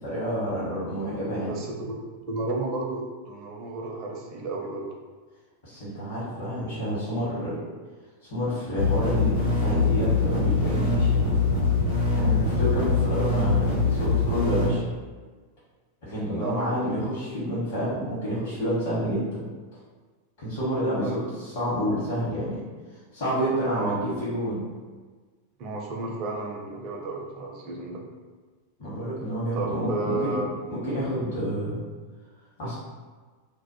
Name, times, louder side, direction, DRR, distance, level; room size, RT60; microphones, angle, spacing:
voice 1, 0.0-1.5 5.6-7.6 8.3-11.4 12.1-14.8 16.0-19.4 20.4-22.6 23.1-24.6 28.8-30.4 30.7-31.8 32.6-32.7, equal, 55° left, -10 dB, 0.9 m, -29 dB
voice 2, 1.4-1.7 2.3-4.9 16.3-16.7 21.0-21.3 23.7-24.0 25.6-28.0 29.5-30.5, right 3 dB, 40° right, 0 dB, 0.5 m, -32 dB
sound 1, 8.8-14.7, left 3 dB, 80° left, 0.9 m, -23 dB
2.2 x 2.0 x 2.9 m, 1.4 s
figure-of-eight pair, 90°, 0 cm